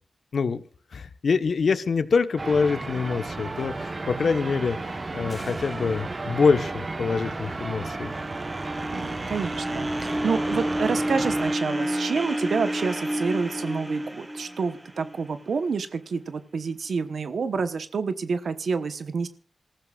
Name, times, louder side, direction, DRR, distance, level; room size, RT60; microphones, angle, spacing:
voice 1, 0.3-0.6 0.9-8.1, left 5 dB, 75° left, 10 dB, 1.1 m, -25 dB
sound 1, 2.4-11.6, right 3 dB, 40° right, 1.1 m, -33 dB
sound 2, 5.3-6.7, left 2 dB, 20° left, 5.3 m, -50 dB
sound 3, 7.4-15.7, right 1 dB, 15° right, 1.2 m, -30 dB
voice 2, 8.9-19.3, right 5 dB, 80° right, 11 dB, 1.0 m, -28 dB
27.5 x 14.5 x 2.4 m, 0.43 s
wide cardioid pair, 80°, 0 cm